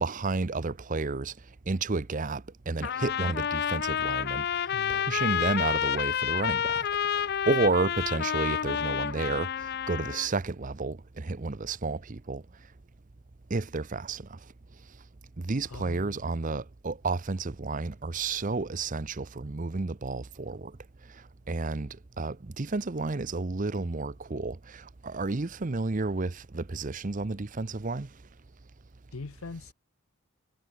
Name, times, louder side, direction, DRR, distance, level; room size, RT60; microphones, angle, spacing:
voice 1, 0.0-1.3 1.7-4.5 4.9-6.9 7.2-12.4 13.5-14.4 15.4-20.7 21.5-28.1, right 3 dB, 35° right, 0.7 m, -31 dB
Trumpet, 2.8-10.3, left 8 dB, 45° left, 0.5 m, -29 dB
voice 2, 4.7-5.4 15.6-16.2 29.1-29.7, left 3 dB, 70° left, 0.8 m, -42 dB
head